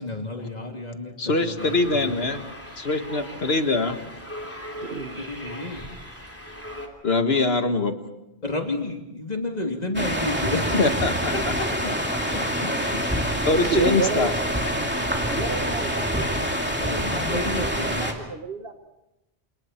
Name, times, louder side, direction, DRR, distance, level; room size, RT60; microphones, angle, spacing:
voice 1, 0.0-2.1 3.3-3.4 5.2-5.8 8.4-10.8 12.3-12.4 16.8-18.1, left 2 dB, 40° left, 2 dB, 3.2 m, -31 dB
voice 2, 1.2-2.4 2.8-4.0 7.0-8.0 10.8-11.8 13.1-14.3, left 3 dB, 80° left, 7 dB, 1.9 m, -23 dB
sound 1, 1.6-6.9, equal, 15° left, 3.1 m, -39 dB
voice 3, 4.8-5.2 13.5-14.3 15.3-16.5 17.1-18.7, right 5 dB, 70° right, 6 dB, 1.5 m, -30 dB
sound 2, 9.9-18.1, equal, 10° right, 2.7 m, -26 dB
28.5 x 28.0 x 4.5 m, 0.92 s
omnidirectional pair, 1.0 m